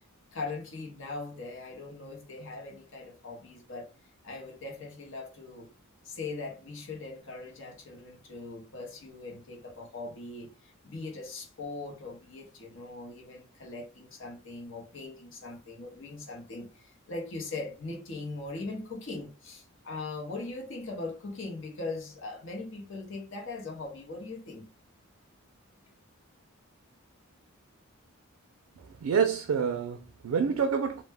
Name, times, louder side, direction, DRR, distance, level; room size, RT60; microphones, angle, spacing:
voice 1, 0.3-3.9 4.2-5.7 6.0-24.7, left 3 dB, 60° left, 0.7 m, -40 dB
voice 2, 28.8-31.0, right 6 dB, 85° right, 0.3 m, -28 dB
2.1 x 2.1 x 3.3 m
head